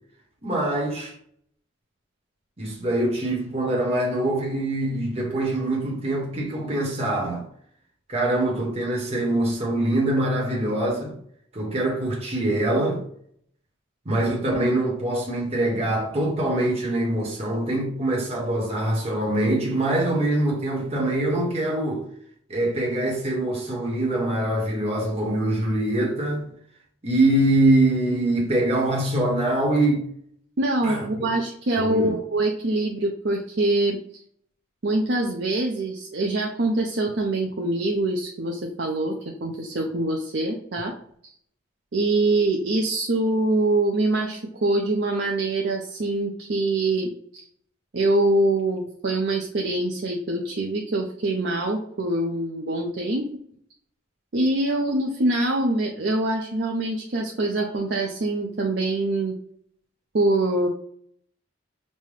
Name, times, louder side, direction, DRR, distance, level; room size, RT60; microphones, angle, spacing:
voice 1, 0.4-1.1 2.6-7.5 8.1-11.1 11.5-13.0 14.0-22.0 22.5-26.5 27.0-30.0 30.8-31.1 31.8-32.2, right 1 dB, 30° right, 1.0 m, -24 dB
voice 2, 30.6-34.2 34.8-41.0 41.9-47.5 47.9-53.3 54.3-59.4 60.1-60.7, right 2 dB, 60° right, 0.5 m, -24 dB
5.3 x 2.1 x 3.2 m
head